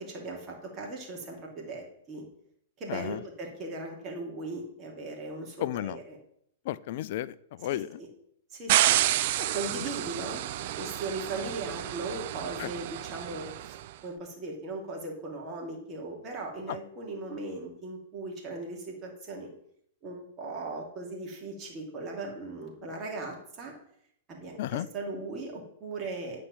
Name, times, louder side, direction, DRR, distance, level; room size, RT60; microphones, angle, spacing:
voice 1, 0.0-2.2 2.8-6.2 7.7-8.1 8.5-9.0 9.4-19.5 20.0-23.7 24.3-26.4, right 2 dB, 30° right, -1 dB, 2.8 m, -38 dB
voice 2, 2.9-3.2 5.6-6.0 6.7-8.0 12.6-12.7 16.7-16.8 24.6-24.9, left 13 dB, 50° left, 18 dB, 0.4 m, -33 dB
sound 1, 8.7-13.8, right 13 dB, 50° right, 0.4 m, -29 dB
9.7 x 4.3 x 7.1 m, 0.70 s
figure-of-eight pair, 100°, 0 cm